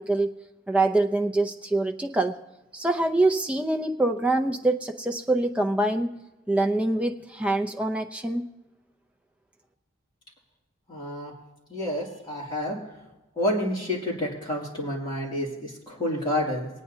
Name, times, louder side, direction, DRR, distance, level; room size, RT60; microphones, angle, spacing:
voice 1, 0.0-2.4 2.7-6.2 6.5-8.5, right 2 dB, 5° right, 4 dB, 0.5 m, -25 dB
voice 2, 10.9-11.3 11.7-12.8 13.4-16.7, left 1 dB, 20° left, -5 dB, 2.5 m, -29 dB
25.0 x 9.1 x 2.7 m, 1.0 s
head